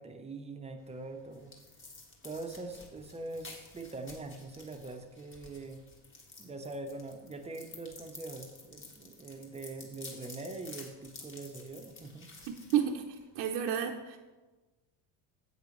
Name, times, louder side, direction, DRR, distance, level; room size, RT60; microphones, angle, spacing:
voice 1, 0.0-1.5 2.2-5.8 6.4-12.3, right 3 dB, 15° right, 5 dB, 0.7 m, -43 dB
sound 1, 0.8-13.5, left 3 dB, 30° left, 1.8 m, -52 dB
voice 2, 12.7-14.2, right 9 dB, 80° right, 0 dB, 0.8 m, -31 dB
10.5 x 8.1 x 3.1 m, 1.2 s
cardioid pair, 135°, 42 cm